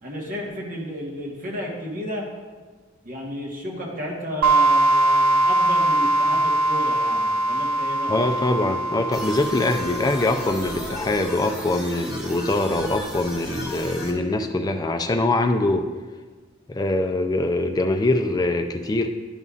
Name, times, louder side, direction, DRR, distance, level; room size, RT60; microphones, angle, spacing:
voice 1, 0.0-2.3 3.0-8.2, equal, 40° right, -2 dB, 1.4 m, -32 dB
sound 1, 4.4-10.9, right 1 dB, 90° right, 0.4 m, -22 dB
voice 2, 8.1-15.8 16.7-19.1, left 2 dB, 20° left, 5 dB, 0.3 m, -23 dB
sound 2, 9.1-14.1, left 1 dB, ahead, 1.0 m, -35 dB
11.0 x 5.3 x 2.4 m, 1.4 s
head